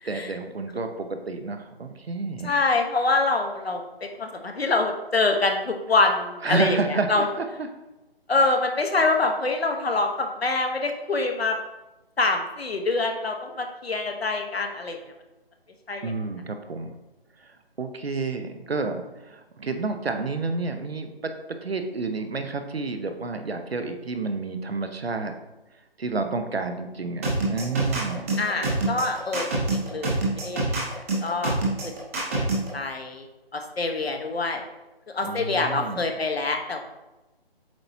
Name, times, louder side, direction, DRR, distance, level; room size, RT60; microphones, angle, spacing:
voice 1, 0.0-2.6 6.4-7.7 16.0-17.0 17.8-25.3 26.0-27.2 27.5-28.4 35.2-36.1, right 3 dB, 85° right, 7 dB, 0.9 m, -30 dB
voice 2, 2.4-7.3 8.3-11.6 12.2-15.0 15.9-16.1 28.4-30.1 30.4-30.6 31.2-31.6 32.3-32.5 32.7-33.3 33.5-34.6 35.1-36.8, left 3 dB, 85° left, 4 dB, 1.1 m, -25 dB
sound 1, 27.2-32.7, right 2 dB, 15° right, 0.8 m, -25 dB
7.6 x 4.4 x 2.8 m, 1.0 s
figure-of-eight pair, 155°, 30 cm